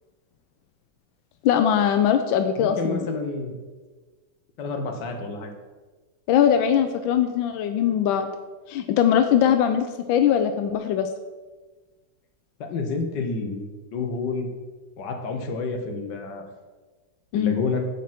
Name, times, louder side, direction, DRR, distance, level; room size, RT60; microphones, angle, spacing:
voice 1, 1.4-3.1 6.3-8.3 8.7-11.1 17.3-17.6, left 9 dB, 90° left, 7 dB, 1.4 m, -21 dB
voice 2, 2.6-3.6 4.6-5.5 12.6-14.5 15.0-16.5 17.3-17.9, left 4 dB, 65° left, 4 dB, 1.8 m, -29 dB
10.0 x 7.4 x 4.3 m, 1.3 s
omnidirectional pair, 2.1 m